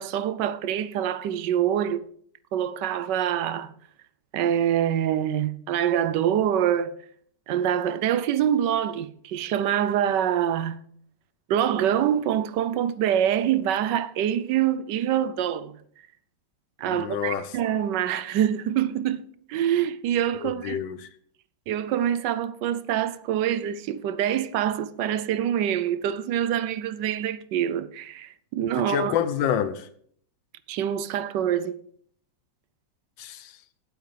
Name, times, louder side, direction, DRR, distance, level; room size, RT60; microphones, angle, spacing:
voice 1, 0.0-2.1 2.5-3.7 4.3-7.0 7.5-10.8 11.5-15.8 16.8-20.8 21.7-29.2 30.7-31.8, right 10 dB, 75° right, 1.2 m, -25 dB
voice 2, 16.8-17.5 20.3-21.1 28.9-29.9 33.2-33.5, left 9 dB, 90° left, 1.5 m, -28 dB
17.5 x 8.1 x 3.3 m
omnidirectional pair, 1.9 m